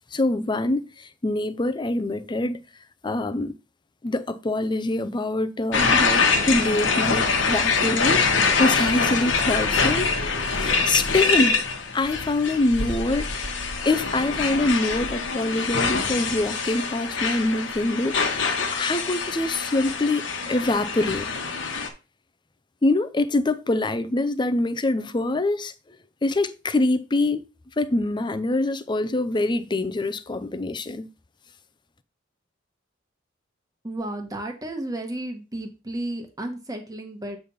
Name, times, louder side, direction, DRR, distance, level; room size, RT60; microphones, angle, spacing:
voice 1, 0.1-2.6 3.0-3.5 4.0-8.2 8.6-10.1 10.4-11.6 11.9-13.3 13.9-21.3 22.8-25.7 26.2-27.4 27.8-31.1, left 2 dB, 25° left, 0.5 m, -25 dB
sound 1, 5.7-21.9, left 4 dB, 70° left, 1.2 m, -24 dB
voice 2, 33.8-37.4, right 1 dB, 20° right, 1.4 m, -33 dB
8.2 x 3.4 x 5.6 m
head